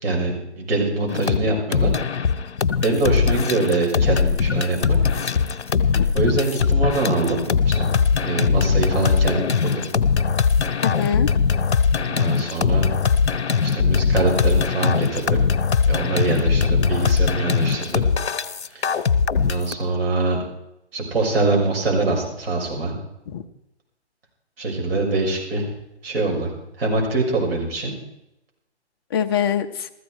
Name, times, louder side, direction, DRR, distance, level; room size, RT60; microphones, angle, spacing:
voice 1, 0.0-1.9 2.8-5.0 6.1-7.4 7.7-7.9 8.2-9.9 12.0-12.9 13.6-15.5 15.9-18.1 18.7-18.9 19.4-20.4 20.9-22.9 24.6-25.7 26.0-26.5 26.8-27.9, right 3 dB, 55° right, -1 dB, 6.6 m, -23 dB
sound 1, 1.1-1.4 1.7-19.8, left 6 dB, 70° left, 1.2 m, -21 dB
voice 2, 1.1-1.6 3.3-3.4 5.9-6.1 10.8-11.3 23.3-23.4 29.1-29.9, left 8 dB, 20° left, 6 dB, 0.6 m, -25 dB
15.0 x 14.5 x 4.8 m, 0.85 s
figure-of-eight pair, 140°, 34 cm